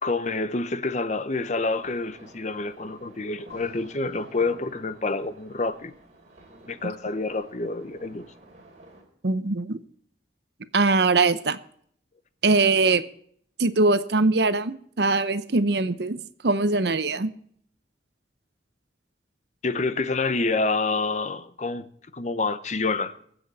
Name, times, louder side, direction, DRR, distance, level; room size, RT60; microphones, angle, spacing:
voice 1, 0.0-5.9 6.7-8.3 19.6-21.9 22.1-23.1, left 3 dB, 40° left, 0.7 m, -27 dB
sound 1, 1.3-9.0, right 1 dB, 40° right, 3.4 m, -51 dB
voice 2, 9.2-9.8 10.7-11.6 12.4-13.0 13.6-17.3, right 3 dB, 60° right, 0.8 m, -22 dB
23.0 x 7.9 x 4.1 m
head